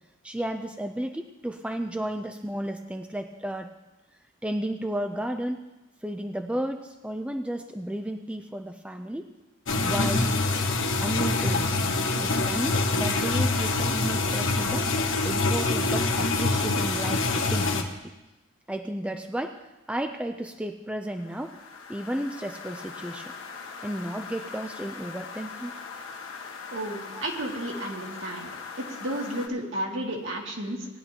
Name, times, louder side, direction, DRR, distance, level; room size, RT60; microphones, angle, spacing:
voice 1, 0.2-3.7 4.4-5.7 6.0-9.3 9.7-10.3 11.0-14.9 15.2-18.1 18.7-19.6 19.9-21.6 21.9-23.3 23.8-25.7 27.1-27.2, right 1 dB, 5° right, 5 dB, 0.4 m, -33 dB
sound 1, 9.7-17.8, left 3 dB, 70° left, 1.1 m, -25 dB
sound 2, 21.1-29.5, left 5 dB, 85° left, 1.5 m, -41 dB
voice 2, 26.7-28.5 28.8-30.9, right 1 dB, 70° right, -1 dB, 2.1 m, -32 dB
19.0 x 10.5 x 2.9 m, 1.0 s
head